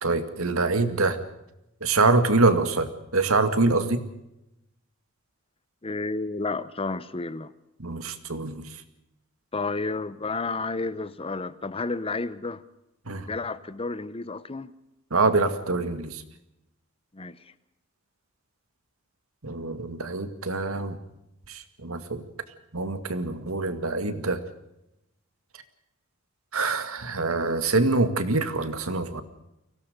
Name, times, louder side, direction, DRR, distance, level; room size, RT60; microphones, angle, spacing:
voice 1, 0.0-1.2 1.8-4.0 7.8-8.7 13.1-13.3 15.1-16.2 19.4-21.0 21.5-22.2 22.7-24.4 26.5-29.2, right 3 dB, 90° right, 10 dB, 2.1 m, -25 dB
voice 2, 5.8-7.5 9.5-12.6 13.3-14.7 17.1-17.4, left 3 dB, 25° left, 16 dB, 0.8 m, -31 dB
24.0 x 17.5 x 6.6 m, 0.87 s
head